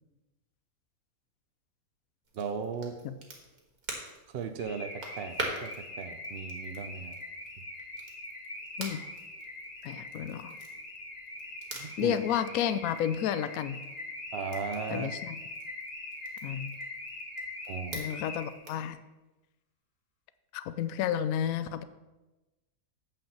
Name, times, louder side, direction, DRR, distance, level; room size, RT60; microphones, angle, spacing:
Crackle, 2.2-18.9, right 2 dB, 85° right, 2.3 m, -46 dB
voice 1, 2.3-3.0 4.3-7.2 11.8-12.2 14.3-15.1 17.7-18.1, right 6 dB, 55° right, 7 dB, 0.7 m, -37 dB
Car / Alarm, 4.6-18.7, left 2 dB, 35° left, 1.8 m, -42 dB
voice 2, 9.8-10.5 12.0-13.8 14.9-15.4 16.4-16.7 17.9-19.0 20.5-21.8, left 9 dB, 75° left, 13 dB, 1.0 m, -31 dB
8.7 x 5.3 x 7.2 m, 1.1 s
omnidirectional pair, 1.6 m